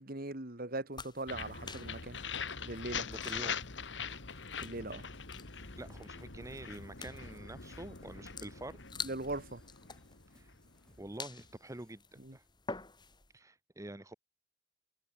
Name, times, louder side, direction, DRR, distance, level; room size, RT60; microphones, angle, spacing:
voice 1, 0.0-2.2 2.6-3.1 4.6-5.0 9.0-9.6 12.2-12.4, right 2 dB, 55° right, 2.6 m, -40 dB
sound 1, 0.9-13.3, left 4 dB, 25° left, 4.2 m, -49 dB
sound 2, 1.3-11.1, left 6 dB, 85° left, 2.2 m, -43 dB
voice 2, 3.0-3.6 5.0-5.1 5.8-9.1 10.3-10.6 11.0-12.4 13.3-14.1, right 1 dB, 20° right, 1.0 m, -47 dB
sound 3, 3.6-11.9, equal, 5° left, 5.6 m, -68 dB
head